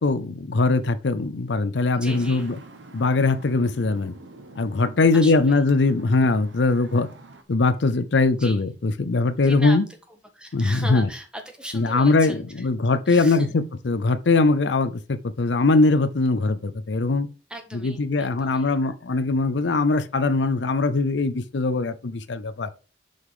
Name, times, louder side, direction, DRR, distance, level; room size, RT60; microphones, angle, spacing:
voice 1, 0.0-2.5 2.9-4.1 4.6-7.1 7.5-9.8 10.5-11.1 11.7-17.3 17.8-22.7, left 3 dB, 75° left, 0.6 m, -21 dB
voice 2, 1.9-2.5 5.1-5.6 8.4-8.6 9.4-9.8 10.1-12.7 13.0-13.5 17.5-18.7, equal, 5° right, 1.4 m, -38 dB
Traffic noise roadway noise, 2.0-7.4, right 2 dB, 90° right, 1.3 m, -46 dB
6.4 x 5.6 x 4.9 m
head